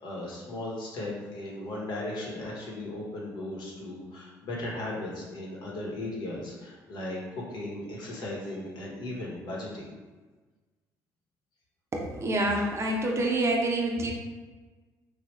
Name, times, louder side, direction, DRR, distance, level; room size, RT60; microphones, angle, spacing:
voice 1, 0.0-9.9, left 1 dB, 65° left, -4 dB, 1.1 m, -37 dB
voice 2, 11.9-14.1, right 1 dB, 35° right, 0 dB, 0.6 m, -27 dB
3.3 x 2.3 x 3.0 m, 1.3 s
supercardioid pair, 75°, 8 cm